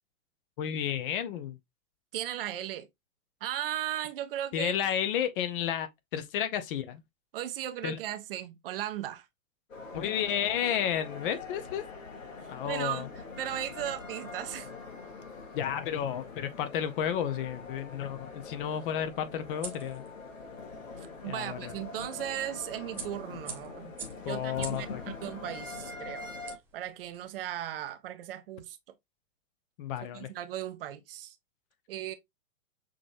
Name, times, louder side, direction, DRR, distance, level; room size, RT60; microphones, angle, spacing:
voice 1, 0.6-1.6 4.5-7.0 7.8-8.0 9.9-11.8 12.5-13.1 15.5-20.1 21.3-21.7 24.2-25.0 29.8-30.3, left 9 dB, 40° left, 0.8 m, -32 dB
voice 2, 2.1-2.9 3.4-4.7 7.3-9.3 12.6-13.1 13.4-14.7 21.0-23.9 24.3-24.9 25.2-26.3 26.7-28.8 30.1-31.4 31.9-32.1, right 12 dB, 40° right, 0.7 m, -36 dB
sound 1, 9.7-26.6, left 3 dB, 65° left, 2.2 m, -44 dB
sound 2, 17.4-27.3, right 5 dB, 5° right, 0.4 m, -49 dB
6.1 x 3.1 x 2.5 m
figure-of-eight pair, 115°, 42 cm